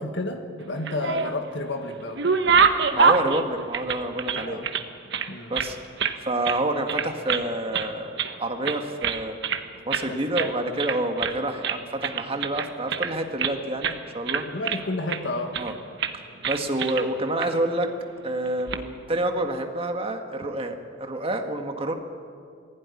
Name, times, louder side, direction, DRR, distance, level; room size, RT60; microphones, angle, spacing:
voice 1, 0.0-2.4 4.4-4.7 5.3-5.5 10.1-10.5 14.5-15.6, left 1 dB, 65° left, 4 dB, 1.6 m, -31 dB
sound 1, 0.7-1.5 1.9-4.8 5.1-6.2 6.4-6.6 6.9-7.5 7.7-8.4 8.6-9.6 9.9-10.1 10.3-10.5 10.8-11.4 11.6-13.5 13.8-14.0 14.3-15.2 15.5-15.7 16.0-16.2 16.4-17.1 17.4-17.5 18.5-18.8, right 6 dB, 60° right, 1.2 m, -25 dB
voice 2, 2.9-4.6 5.5-5.8 6.2-8.1 8.4-9.4 9.8-14.5 15.6-15.7 16.5-17.9 18.2-21.9, right 1 dB, 30° right, 5 dB, 1.7 m, -28 dB
20.0 x 16.0 x 9.8 m, 2.2 s
head